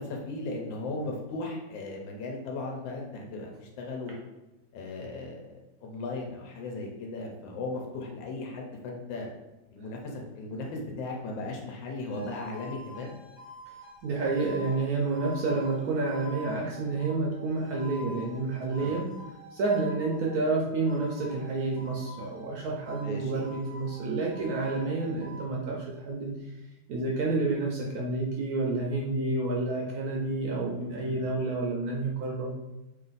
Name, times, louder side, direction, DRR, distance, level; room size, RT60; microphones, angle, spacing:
voice 1, 0.0-4.1 4.7-5.5 5.8-9.3 9.7-13.1 18.8-18.9 23.0-23.5 31.0-31.3, left 2 dB, 85° left, 0 dB, 1.4 m, -37 dB
sound 1, 12.1-20.4 20.9-22.6 22.8-25.5, equal, 50° left, 1.3 m, -47 dB
voice 2, 14.0-19.1 19.5-26.3 26.9-32.5, right 3 dB, 70° right, -2 dB, 0.9 m, -29 dB
3.2 x 2.5 x 3.9 m, 1.0 s
omnidirectional pair, 2.0 m